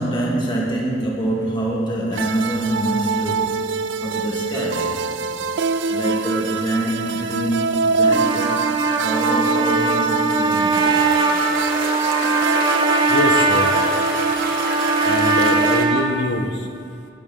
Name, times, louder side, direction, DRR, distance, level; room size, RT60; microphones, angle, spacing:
voice 1, 0.0-3.7 4.0-5.1 5.3-8.7 9.0-11.2, right 1 dB, 25° left, -3 dB, 1.9 m, -25 dB
sound 1, 2.1-15.8, right 5 dB, 80° right, 0.4 m, -24 dB
Trumpet, 8.1-16.1, right 3 dB, 25° right, 0.7 m, -20 dB
sound 2, 10.7-15.9, right 2 dB, 50° right, 1.3 m, -28 dB
voice 2, 13.1-13.7 15.0-16.7, left 1 dB, 70° left, 4 dB, 1.1 m, -24 dB
19.5 x 7.0 x 3.9 m, 2.4 s
head